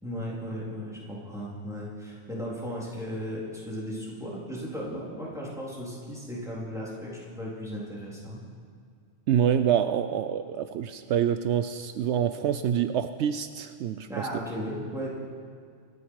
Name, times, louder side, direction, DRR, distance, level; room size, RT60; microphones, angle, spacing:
voice 1, 0.0-8.4 14.1-15.1, equal, 5° right, -6 dB, 3.6 m, -36 dB
voice 2, 9.3-14.1, right 9 dB, 75° right, 10 dB, 0.9 m, -26 dB
26.5 x 9.6 x 4.8 m, 2.2 s
omnidirectional pair, 1.2 m